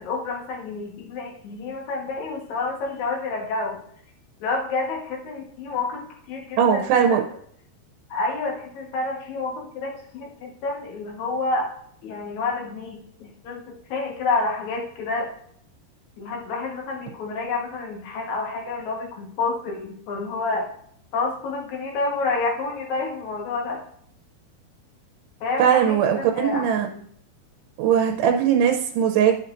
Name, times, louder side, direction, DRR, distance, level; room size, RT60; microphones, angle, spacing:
voice 1, 0.0-3.8 4.4-7.2 8.1-11.7 12.0-15.3 16.2-20.7 21.1-23.8 25.4-27.1, left 3 dB, 60° left, 1 dB, 2.2 m, -29 dB
voice 2, 6.6-7.2 25.6-26.9 27.8-29.4, right 8 dB, 85° right, 4 dB, 2.7 m, -19 dB
12.0 x 5.6 x 2.5 m, 0.64 s
omnidirectional pair, 4.7 m